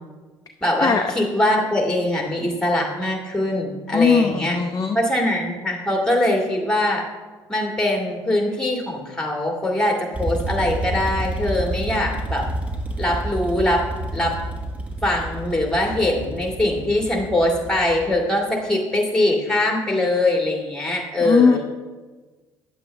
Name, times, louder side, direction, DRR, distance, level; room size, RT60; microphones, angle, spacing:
voice 1, 0.6-4.6 4.9-7.0 7.5-12.5 13.0-13.8 14.1-14.4 15.0-21.6, left 1 dB, 5° left, 1 dB, 2.1 m, -22 dB
voice 2, 3.9-5.0 21.2-21.6, left 6 dB, 35° left, 4 dB, 0.6 m, -19 dB
sound 1, 10.1-18.2, right 1 dB, 10° right, 1.3 m, -29 dB
9.3 x 7.6 x 3.3 m, 1.3 s
hypercardioid pair, 55°, 11 cm